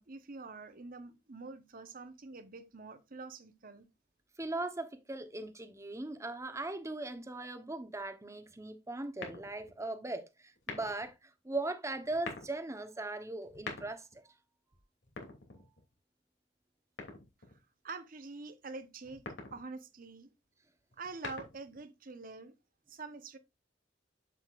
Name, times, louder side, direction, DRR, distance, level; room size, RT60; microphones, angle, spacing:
voice 1, 0.0-3.9 17.8-19.2 19.5-20.3 21.0-22.5 22.9-23.4, right 3 dB, 50° right, 1.0 m, -46 dB
voice 2, 4.4-14.3, right 2 dB, 15° right, 1.0 m, -39 dB
sound 1, 9.2-9.8 10.6-11.1 12.0-12.6 13.4-14.2 15.0-15.9 17.0-17.6 19.0-19.6 20.9-21.8, left 3 dB, 85° left, 2.7 m, -45 dB
8.0 x 7.7 x 2.5 m
head